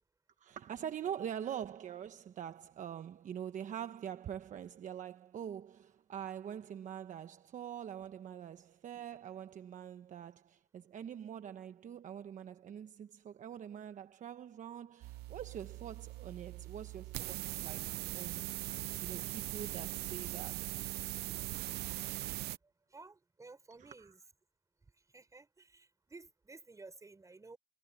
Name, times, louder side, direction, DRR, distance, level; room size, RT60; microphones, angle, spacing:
voice 1, 0.4-18.5 19.0-20.8 23.8-24.1, right 9 dB, 50° right, 1.1 m, -44 dB
sound 1, 15.0-22.6, right 17 dB, 75° right, 0.6 m, -41 dB
voice 2, 22.4-24.2 24.9-27.6, right 3 dB, 20° right, 5.1 m, -55 dB
cardioid pair, 110°, 17 cm